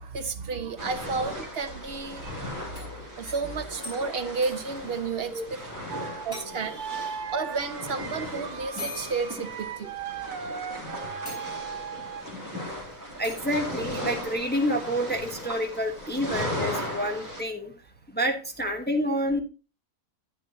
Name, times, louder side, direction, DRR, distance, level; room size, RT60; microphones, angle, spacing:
voice 1, 0.0-2.3 3.2-5.4 6.2-9.9, right 4 dB, 55° right, 0.8 m, -32 dB
sound 1, 0.8-17.4, left 1 dB, 10° right, 2.6 m, -37 dB
sound 2, 2.6-5.7 5.9-6.0 6.3-6.9 8.0-8.1 8.8-10.2 10.7-10.8 11.3-11.9 13.2-13.6, left 2 dB, 85° left, 5.8 m, -43 dB
sound 3, 5.9-12.3, right 7 dB, 85° right, 1.3 m, -38 dB
voice 2, 13.2-17.7 18.1-19.4, equal, 10° left, 1.0 m, -28 dB
9.9 x 9.9 x 2.8 m
omnidirectional pair, 1.6 m